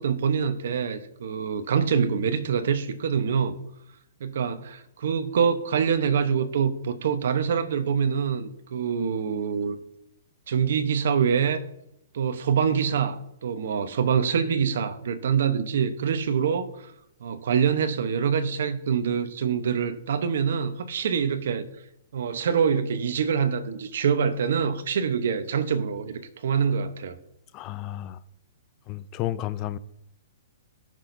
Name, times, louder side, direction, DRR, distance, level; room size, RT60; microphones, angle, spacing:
voice 1, 0.0-3.5 4.2-9.8 10.5-11.6 12.1-16.9 17.2-21.7 22.1-27.2, right 7 dB, 70° right, 0.9 m, -25 dB
voice 2, 27.5-28.2 28.9-29.8, left 13 dB, 25° left, 0.4 m, -32 dB
18.0 x 6.2 x 2.7 m
hypercardioid pair, 155°, 0 cm